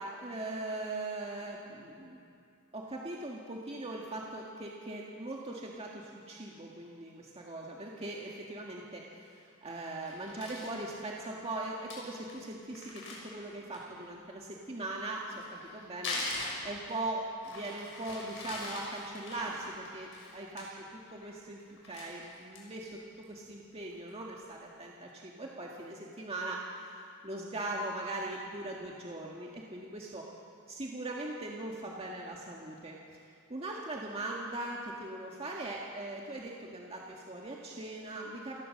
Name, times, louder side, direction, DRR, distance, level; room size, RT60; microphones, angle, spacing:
voice 1, 0.0-2.2 2.7-26.7 27.2-30.3 30.7-33.0 33.3-38.6, right 2 dB, 30° right, -2 dB, 1.8 m, -40 dB
Crumpling crinkling, 10.0-10.7 11.3-11.4 11.6-11.7 11.9-12.0 12.3-12.4 12.7-14.0 15.2-17.1 17.4-20.6 21.0-21.3 21.6-22.8 23.2-23.3 23.7-24.2, left 2 dB, 65° left, 6.6 m, -41 dB
28.5 x 16.0 x 6.5 m, 2.5 s
head